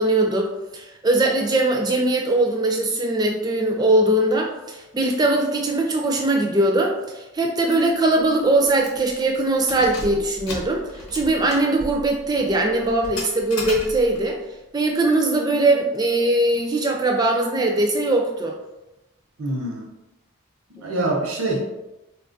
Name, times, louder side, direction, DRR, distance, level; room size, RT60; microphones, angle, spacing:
voice 1, 0.0-10.8 11.1-14.4 14.7-18.5 20.8-20.9, right 2 dB, 20° right, 1 dB, 0.3 m, -21 dB
Keys jangling, 7.7-7.9 8.2-8.3 8.8-9.1 9.6-14.3, left 1 dB, 90° left, 0.8 m, -35 dB
voice 2, 19.4-19.8 20.8-21.6, right 2 dB, 85° right, 0 dB, 0.7 m, -25 dB
3.9 x 2.4 x 2.5 m, 0.99 s
head